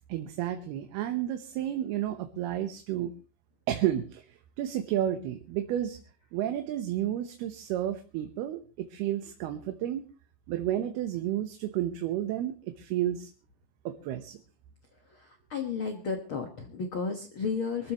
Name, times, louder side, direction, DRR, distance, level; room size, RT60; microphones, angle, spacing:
voice 1, 0.1-3.1 3.7-6.0 6.3-10.1 10.5-13.3 13.9-14.4, right 12 dB, 75° right, 6 dB, 2.9 m, -31 dB
voice 2, 15.5-17.9, left 5 dB, 85° left, 4 dB, 1.1 m, -32 dB
24.5 x 14.5 x 3.0 m, 0.34 s
omnidirectional pair, 4.9 m